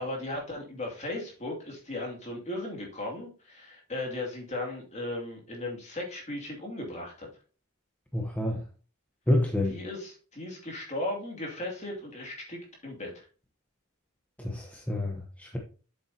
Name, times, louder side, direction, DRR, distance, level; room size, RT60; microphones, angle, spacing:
voice 1, 0.0-7.3 9.7-13.3, left 1 dB, 30° left, 2.5 m, -36 dB
voice 2, 8.1-8.6 9.3-9.7 14.4-15.6, left 1 dB, 5° left, 0.9 m, -28 dB
8.1 x 7.3 x 2.8 m
head